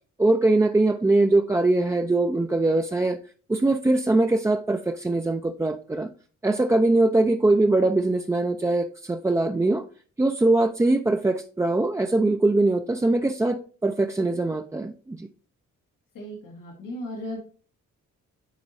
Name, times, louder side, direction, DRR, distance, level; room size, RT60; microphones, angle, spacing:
voice 1, 0.2-3.2 3.5-6.1 6.4-9.8 10.2-15.3, right 2 dB, 10° right, 5 dB, 0.3 m, -22 dB
voice 2, 16.1-17.4, left 1 dB, 90° left, -1 dB, 1.2 m, -36 dB
9.5 x 3.9 x 2.5 m, 0.40 s
cardioid pair, 65°, 32 cm